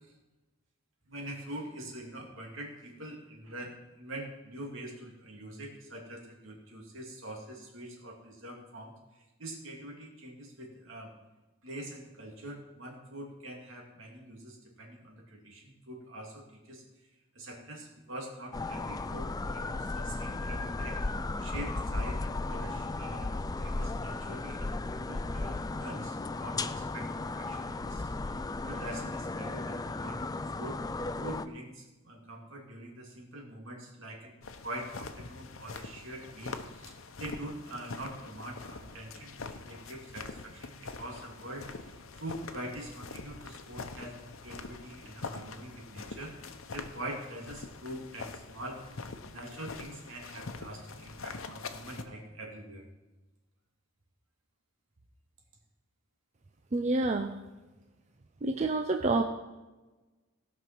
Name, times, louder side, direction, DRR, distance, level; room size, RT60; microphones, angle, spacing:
voice 1, 1.1-9.0 9.4-11.1 11.6-16.8 17.3-21.0 21.4-28.1 28.6-30.2 30.5-30.8 31.2-34.3 34.6-48.8 49.3-52.8, right 1 dB, 70° right, 0 dB, 2.6 m, -44 dB
sound 1, 18.5-31.5, left 2 dB, 20° left, 0.4 m, -35 dB
sound 2, 34.4-52.0, left 4 dB, 80° left, 0.9 m, -44 dB
voice 2, 56.7-57.3 58.4-59.2, right 2 dB, 35° right, 5 dB, 0.6 m, -28 dB
17.0 x 6.0 x 6.0 m, 1.1 s
head